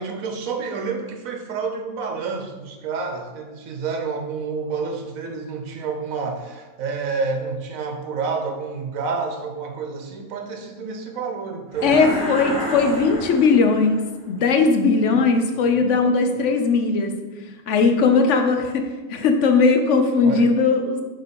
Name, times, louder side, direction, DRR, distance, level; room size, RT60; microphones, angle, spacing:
voice 1, 0.0-12.0 15.0-15.2 15.5-16.4 20.2-20.5, right 4 dB, 70° right, 4 dB, 1.3 m, -29 dB
sound 1, 11.7-14.1, right 1 dB, 25° right, 2.3 m, -29 dB
voice 2, 11.8-14.0 14.3-17.1 17.7-21.0, left 4 dB, 60° left, 5 dB, 1.0 m, -18 dB
6.9 x 3.9 x 5.2 m, 1.2 s
omnidirectional pair, 1.6 m